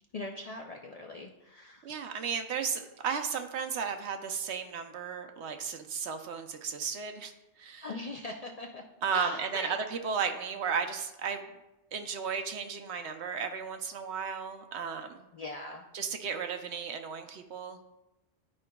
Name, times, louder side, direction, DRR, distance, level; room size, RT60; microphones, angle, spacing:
voice 1, 0.1-1.9 7.8-9.8 15.3-15.8, left 2 dB, 50° left, 0 dB, 0.4 m, -41 dB
voice 2, 1.8-7.3 7.6-7.9 9.0-11.4 11.9-15.2 15.9-17.8, right 6 dB, 75° right, 6 dB, 0.9 m, -34 dB
11.0 x 4.7 x 2.2 m, 0.96 s
omnidirectional pair, 1.2 m